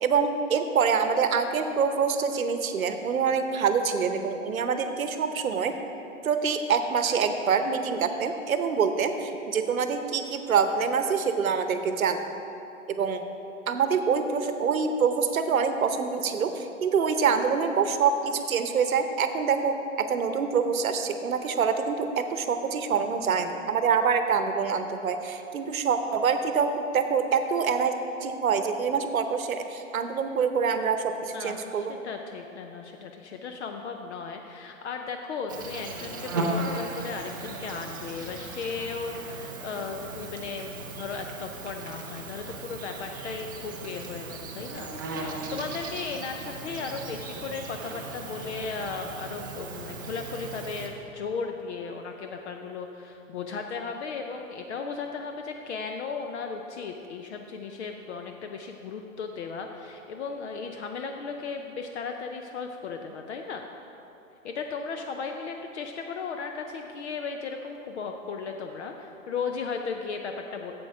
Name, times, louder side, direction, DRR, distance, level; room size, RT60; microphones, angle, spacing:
voice 1, 0.0-5.8 6.2-12.3 12.9-13.2 13.7-32.0, right 6 dB, 75° right, 8 dB, 0.8 m, -26 dB
voice 2, 31.3-44.9 45.2-63.7 64.4-70.7, left 5 dB, 55° left, 4 dB, 0.7 m, -36 dB
Insect, 35.5-50.9, right 2 dB, 15° right, 0.3 m, -37 dB
7.8 x 7.5 x 4.8 m, 2.9 s
hypercardioid pair, 125°, 41 cm